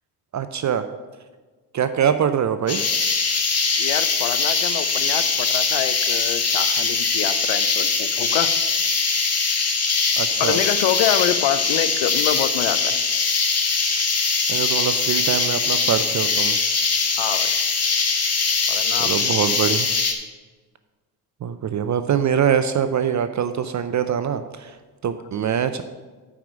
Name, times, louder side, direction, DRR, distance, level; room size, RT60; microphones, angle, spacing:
voice 1, 0.3-0.8 1.7-2.8 10.2-10.6 14.5-16.6 19.0-19.9 21.4-24.8 25.0-25.8, right 8 dB, 35° right, 10 dB, 0.6 m, -23 dB
sound 1, 2.7-20.1, left 4 dB, 30° left, 1.4 m, -21 dB
voice 2, 3.8-8.5 10.4-13.0 17.2-17.5 18.7-19.3, left 12 dB, 65° left, 13 dB, 0.8 m, -26 dB
9.0 x 4.9 x 6.2 m, 1.3 s
hypercardioid pair, 55°, 49 cm